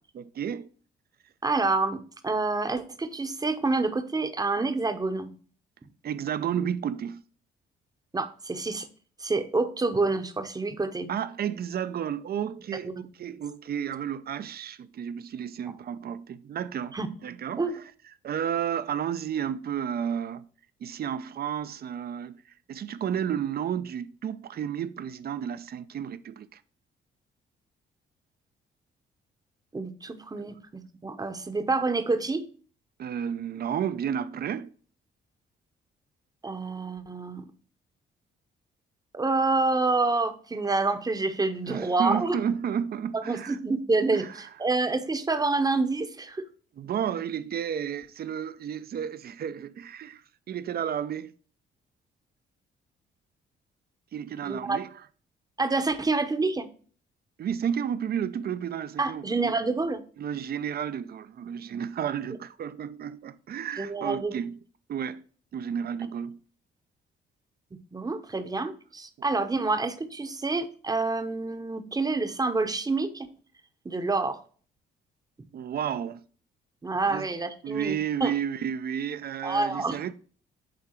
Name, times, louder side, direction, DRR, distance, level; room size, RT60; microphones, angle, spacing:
voice 1, 0.1-0.7 6.0-7.2 11.1-17.8 18.2-20.5 20.8-22.4 22.7-26.6 33.0-34.7 41.7-43.6 44.1-44.4 46.8-50.2 50.5-51.3 54.1-55.0 57.4-59.5 60.2-64.6 64.9-65.2 65.5-66.4 75.5-76.2 77.1-77.3 77.6-80.1, right 8 dB, 50° right, 0.6 m, -32 dB
voice 2, 1.4-5.3 8.1-8.9 9.2-11.1 13.0-13.1 16.9-17.1 17.6-17.8 29.7-32.4 36.4-37.5 39.1-42.4 43.1-46.5 54.4-54.8 55.6-56.7 59.0-60.0 63.8-64.4 67.9-73.3 73.8-74.4 76.8-78.3 79.4-80.0, right 3 dB, 20° right, 0.8 m, -27 dB
8.7 x 3.6 x 4.5 m
cardioid pair, 90°, 20 cm